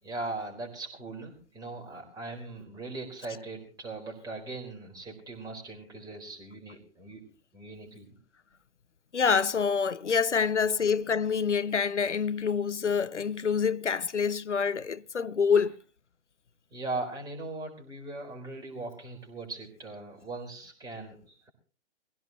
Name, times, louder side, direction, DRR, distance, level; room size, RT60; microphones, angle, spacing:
voice 1, 0.0-7.2 7.5-8.1 10.3-10.5 15.6-15.8 16.7-21.5, right 3 dB, 10° right, 4.3 m, -39 dB
voice 2, 9.1-15.8, left 6 dB, 80° left, 0.8 m, -26 dB
22.5 x 16.5 x 3.0 m
figure-of-eight pair, 125°, 35 cm